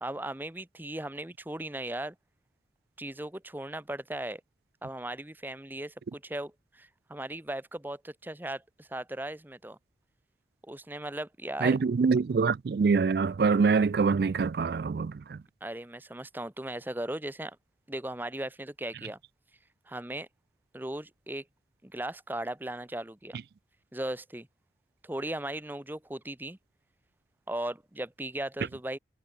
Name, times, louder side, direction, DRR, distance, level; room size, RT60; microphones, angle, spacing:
voice 1, 0.0-2.1 3.0-4.4 4.8-9.8 10.6-11.8 15.6-17.6 17.9-19.2 19.9-20.3 20.7-21.4 21.8-23.4 23.9-24.5 25.0-26.6 27.5-29.0, right 1 dB, 10° right, 0.8 m, -37 dB
voice 2, 11.6-15.4, right 5 dB, 60° right, 0.4 m, -25 dB
head